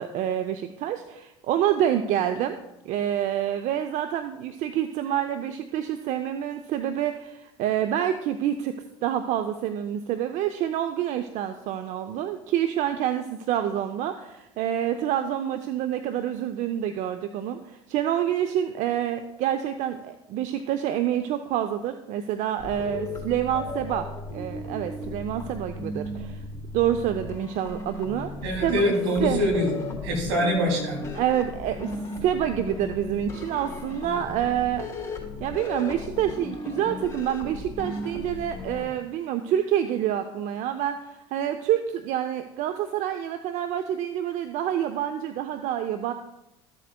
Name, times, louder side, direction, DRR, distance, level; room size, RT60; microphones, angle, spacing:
voice 1, 0.0-2.6 2.8-8.7 9.0-26.4 26.7-28.3 28.6-28.8 29.2-29.4 31.1-32.0 32.2-34.9 35.4-46.1, right 10 dB, 55° right, 9 dB, 0.5 m, -27 dB
sound 1, 22.6-38.9, left 2 dB, 20° left, 3.6 m, -36 dB
voice 2, 28.4-31.0, equal, 80° right, 0 dB, 2.9 m, -24 dB
14.0 x 7.5 x 2.3 m, 0.90 s
hypercardioid pair, 70°, 15 cm